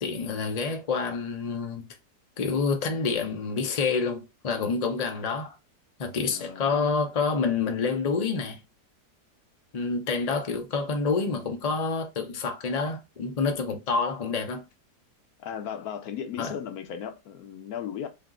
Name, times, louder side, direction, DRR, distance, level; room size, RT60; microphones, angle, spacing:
voice 1, 0.0-1.9 2.4-5.5 6.0-8.6 9.7-14.6 16.4-16.5, left 4 dB, 55° left, 0.4 m, -28 dB
voice 2, 6.2-6.7 15.4-18.1, left 8 dB, 70° left, 1.1 m, -36 dB
3.5 x 2.7 x 3.6 m
omnidirectional pair, 1.8 m